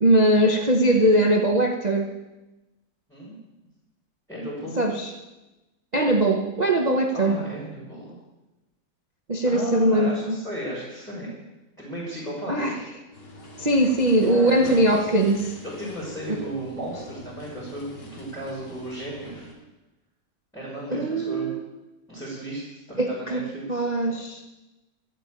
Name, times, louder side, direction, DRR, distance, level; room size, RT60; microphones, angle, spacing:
voice 1, 0.0-2.1 4.8-5.1 5.9-7.4 9.3-10.4 12.5-12.8 13.6-15.5 20.9-21.6 23.0-24.4, right 1 dB, 50° right, 3 dB, 0.4 m, -21 dB
voice 2, 4.3-4.9 7.1-8.2 9.4-11.3 11.8-12.8 14.2-15.1 15.6-19.5 20.5-21.5 22.1-23.8, right 1 dB, ahead, -8 dB, 4.9 m, -35 dB
sound 1, 13.1-19.5, left 1 dB, 75° left, 3.5 m, -43 dB
13.5 x 8.5 x 8.9 m, 1.1 s
omnidirectional pair, 2.3 m